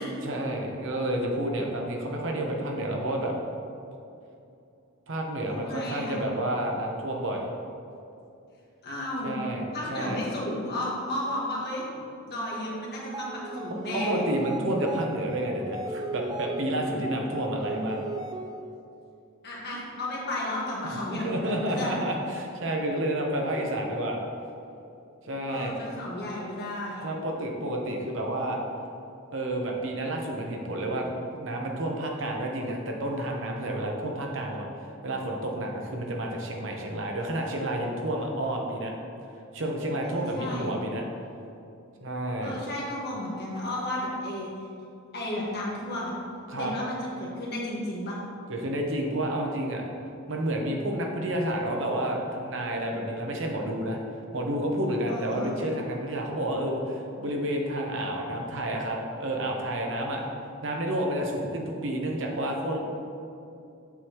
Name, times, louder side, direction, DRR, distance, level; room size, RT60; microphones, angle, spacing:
voice 1, 0.2-3.3 5.1-7.5 9.2-10.2 13.9-18.0 21.1-24.2 25.2-25.8 27.0-28.6 29.3-38.9 39.5-41.0 42.0-42.6 46.5-46.7 48.5-49.8 50.3-54.0 54.3-60.2 60.6-62.9, right 1 dB, 65° right, 1 dB, 1.0 m, -30 dB
voice 2, 5.5-6.3 8.8-9.4 9.7-11.9 12.3-14.3 19.4-21.9 25.5-27.0 40.0-40.8 42.4-44.5 45.1-46.1 46.5-48.2 55.1-55.5, left 1 dB, 55° left, -5 dB, 1.7 m, -33 dB
sound 1, 13.0-18.8, right 2 dB, 20° right, 0.4 m, -36 dB
8.1 x 6.3 x 3.0 m, 2.7 s
head